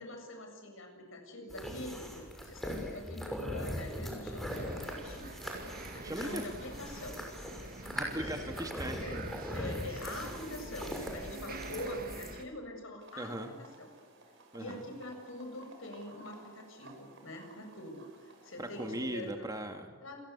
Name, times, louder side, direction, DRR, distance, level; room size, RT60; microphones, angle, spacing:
voice 1, 0.0-5.3 5.9-7.2 7.8-8.5 9.0-9.2 9.5-13.9 14.6-19.5 20.0-20.2, left 1 dB, 70° left, 4 dB, 7.4 m, -44 dB
sound 1, 1.5-12.3, equal, ahead, 6.2 m, -41 dB
sound 2, 4.5-12.4, right 2 dB, 45° right, 2.1 m, -46 dB
voice 2, 6.0-6.5 7.9-9.0 13.2-13.5 14.5-14.9 18.6-19.9, right 1 dB, 15° right, 4 dB, 2.4 m, -38 dB
sound 3, 13.0-19.3, right 2 dB, 60° right, 6.3 m, -57 dB
29.0 x 22.5 x 8.4 m, 1.4 s
head